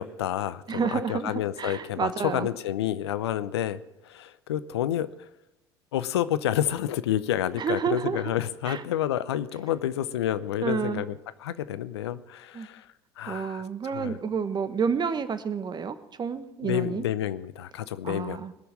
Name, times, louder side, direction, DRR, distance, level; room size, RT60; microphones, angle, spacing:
voice 1, 0.0-5.3 5.9-12.9 13.2-13.6 13.9-14.2 16.6-18.4, left 11 dB, 80° left, 15 dB, 0.7 m, -29 dB
voice 2, 0.7-2.5 7.6-8.3 8.6-8.8 10.6-11.0 12.5-12.7 13.3-17.0 18.0-18.5, right 6 dB, 30° right, 12 dB, 1.3 m, -30 dB
20.5 x 7.0 x 7.3 m, 0.96 s
hypercardioid pair, 70°, 14 cm